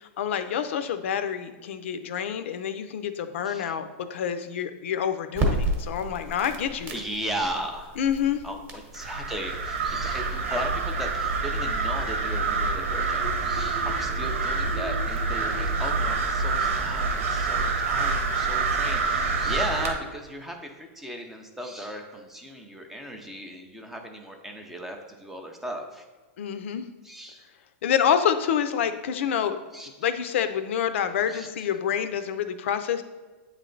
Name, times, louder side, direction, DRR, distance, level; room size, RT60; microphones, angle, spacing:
voice 1, 0.2-6.9 8.0-8.4 26.4-26.8 27.8-29.6 30.0-33.0, left 8 dB, 65° left, 9 dB, 0.5 m, -27 dB
voice 2, 3.4-3.7 6.9-8.0 8.4-26.0 27.0-27.4 29.7-29.9 31.3-31.5, equal, 5° right, 3 dB, 0.4 m, -36 dB
sound 1, 5.3-18.8, right 1 dB, 25° right, 0.9 m, -37 dB
sound 2, 9.0-19.9, right 4 dB, 90° right, 1.1 m, -27 dB
8.5 x 3.2 x 3.8 m, 1.3 s
supercardioid pair, 170°, 7 cm